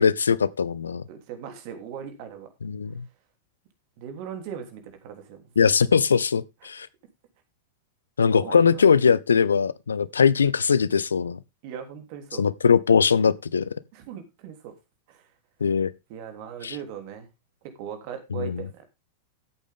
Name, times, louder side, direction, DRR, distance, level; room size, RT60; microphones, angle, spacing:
voice 1, 0.0-1.0 2.6-3.1 5.6-6.9 8.2-11.4 12.4-13.6 15.6-15.9 16.6-16.7 18.4-18.6, left 6 dB, 70° left, 0.6 m, -21 dB
voice 2, 1.1-2.5 4.0-5.4 6.6-6.7 8.3-8.8 11.6-12.4 13.9-14.7 15.1-15.3 16.1-17.3 17.8-18.8, right 8 dB, 45° right, 3.2 m, -39 dB
14.0 x 8.4 x 3.7 m
figure-of-eight pair, 90°, 0 cm